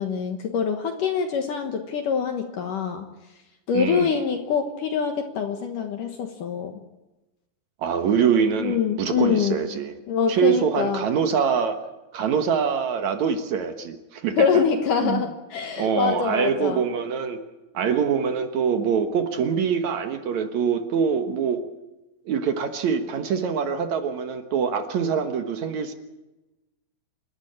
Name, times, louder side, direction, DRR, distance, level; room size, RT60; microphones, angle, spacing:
voice 1, 0.0-3.1 3.7-6.7 8.6-9.6 10.1-11.1 14.4-16.8, left 7 dB, 65° left, 5 dB, 2.4 m, -25 dB
voice 2, 3.7-4.2 7.8-9.9 10.3-11.8 12.1-14.4 15.0-15.2 15.8-17.4 17.7-21.6 22.3-25.9, right 7 dB, 65° right, 7 dB, 1.9 m, -24 dB
28.5 x 12.5 x 8.7 m, 1.0 s
omnidirectional pair, 5.1 m